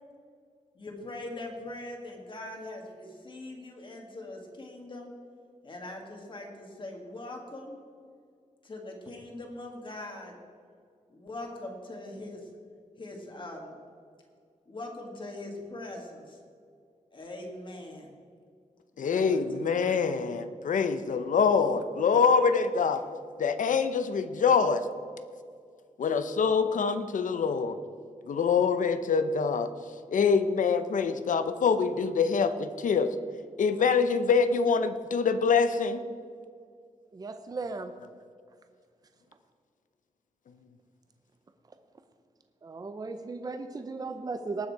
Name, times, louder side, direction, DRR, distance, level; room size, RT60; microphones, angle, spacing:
voice 1, 0.8-5.1 5.6-7.8 8.6-10.4 11.1-12.5 13.0-13.8 14.7-16.4 17.1-18.1 18.9-19.9, left 2 dB, 40° left, 1 dB, 1.9 m, -41 dB
voice 2, 19.0-23.0 23.4-24.8 26.0-27.8 28.3-29.7 30.1-33.1 33.6-36.0, left 5 dB, 80° left, 11 dB, 0.8 m, -25 dB
voice 3, 37.1-37.9 42.6-44.7, right 3 dB, 30° right, 8 dB, 0.6 m, -36 dB
18.5 x 6.6 x 4.7 m, 2.2 s
wide cardioid pair, 150°, 13 cm